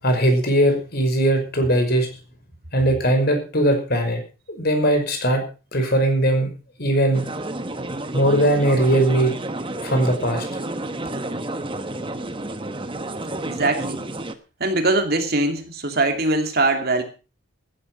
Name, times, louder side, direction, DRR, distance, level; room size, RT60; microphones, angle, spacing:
voice 1, 0.0-2.1 2.7-4.2 4.5-5.4 5.7-6.5 6.8-7.3 8.1-9.3 9.8-10.4, right 1 dB, 50° left, 5 dB, 5.3 m, -19 dB
sound 1, 7.1-14.3, right 2 dB, 25° right, 1.1 m, -30 dB
voice 2, 13.5-14.1 14.6-17.0, right 2 dB, 50° right, 6 dB, 2.6 m, -22 dB
15.0 x 11.0 x 5.5 m, 0.34 s
head